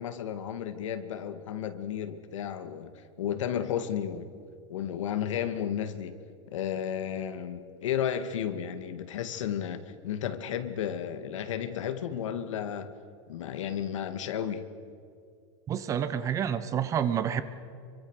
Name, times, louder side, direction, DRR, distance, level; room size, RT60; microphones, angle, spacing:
voice 1, 0.0-2.9 3.2-4.3 4.7-6.2 6.5-12.9 13.3-14.7, left 9 dB, 85° left, 9 dB, 2.3 m, -33 dB
voice 2, 15.7-17.4, right 9 dB, 20° right, 13 dB, 1.1 m, -28 dB
26.5 x 24.5 x 6.6 m, 2.3 s
supercardioid pair, 165°, 16 cm